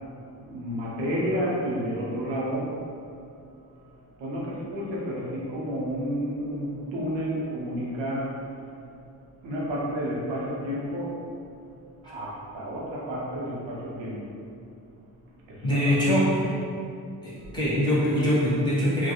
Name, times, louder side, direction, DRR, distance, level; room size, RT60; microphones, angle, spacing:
voice 1, 0.3-2.8 3.6-3.9 4.2-8.7 9.4-11.2 12.0-14.4 15.5-15.9, equal, 75° right, -5 dB, 0.8 m, -31 dB
voice 2, 15.6-16.6 17.2-19.1, equal, 10° left, -9 dB, 1.4 m, -23 dB
2.6 x 2.3 x 2.3 m, 2.4 s
supercardioid pair, 45°, 45 cm